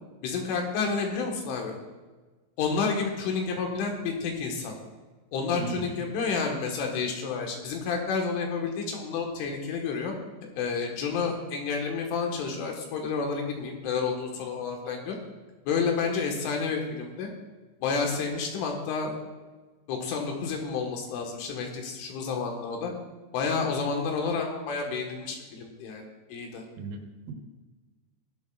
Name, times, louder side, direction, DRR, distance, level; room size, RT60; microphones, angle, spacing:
voice 1, 0.2-1.8 2.6-4.7 5.3-10.1 10.6-15.2 15.7-17.3 17.8-19.1 19.9-22.9 23.3-26.0 26.3-26.6, left 5 dB, 75° left, 2 dB, 3.8 m, -30 dB
voice 2, 26.8-27.3, right 4 dB, 80° right, 3 dB, 3.8 m, -36 dB
16.5 x 12.0 x 2.4 m, 1.3 s
omnidirectional pair, 5.8 m